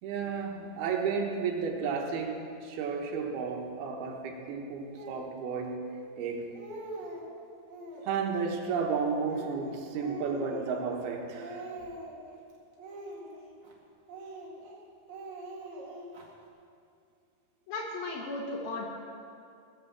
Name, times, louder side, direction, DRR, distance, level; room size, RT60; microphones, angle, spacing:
voice 1, 0.0-6.5 8.0-11.7, right 5 dB, 85° right, 2 dB, 3.3 m, -33 dB
Speech, 4.9-5.3 6.0-6.1 6.4-7.3 7.7-8.3 8.8-11.1 11.3-12.3 12.8-13.7 14.1-14.8 15.1-16.3, right 2 dB, 55° right, 3.2 m, -43 dB
voice 2, 17.7-18.9, left 2 dB, 75° left, -2 dB, 3.2 m, -35 dB
19.0 x 7.1 x 7.4 m, 2.4 s
omnidirectional pair, 4.4 m